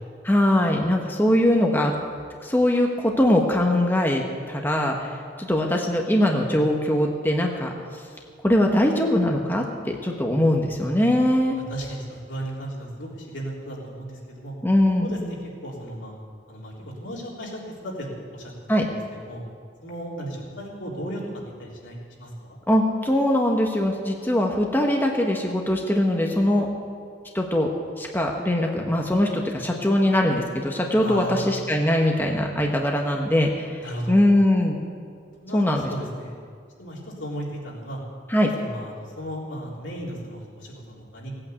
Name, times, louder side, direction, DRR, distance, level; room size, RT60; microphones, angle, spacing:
voice 1, 0.2-1.9 2.4-5.1 5.4-7.7 8.4-11.6 14.6-15.2 18.7-18.9 22.7-26.7 27.3-27.7 28.0-34.8 35.5-35.9 38.3-38.5, left 1 dB, 10° left, 1 dB, 1.1 m, -21 dB
voice 2, 11.6-14.5 15.0-15.4 15.6-16.1 16.5-18.5 18.8-19.4 19.8-21.2 21.6-22.6 31.0-31.6 33.8-34.2 35.4-36.4 36.8-38.0 38.6-41.3, equal, 90° left, -4 dB, 3.7 m, -35 dB
16.5 x 8.8 x 8.3 m, 2.2 s
head